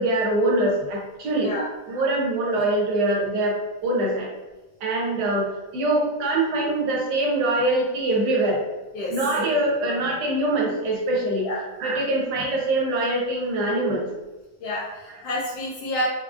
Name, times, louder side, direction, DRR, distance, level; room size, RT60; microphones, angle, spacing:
voice 1, 0.0-1.6 1.9-3.6 3.8-4.3 4.8-8.6 9.1-11.5 11.8-14.1 15.1-15.2, right 2 dB, 70° right, -2 dB, 1.2 m, -23 dB
voice 2, 14.6-16.1, left 1 dB, 70° left, -6 dB, 1.1 m, -29 dB
3.6 x 2.3 x 2.4 m, 1.1 s
omnidirectional pair, 1.9 m